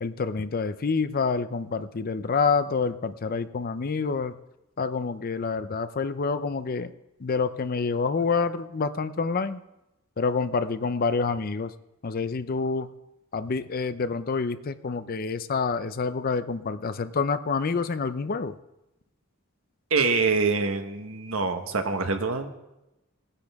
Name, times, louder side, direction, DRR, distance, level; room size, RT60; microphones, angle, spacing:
voice 1, 0.0-4.4 4.8-6.9 7.2-9.6 10.2-11.7 12.0-12.9 13.3-18.6, left 4 dB, 45° left, 12 dB, 0.5 m, -27 dB
voice 2, 19.9-22.5, right 4 dB, 80° right, 6 dB, 1.3 m, -25 dB
18.5 x 9.9 x 3.5 m, 0.94 s
head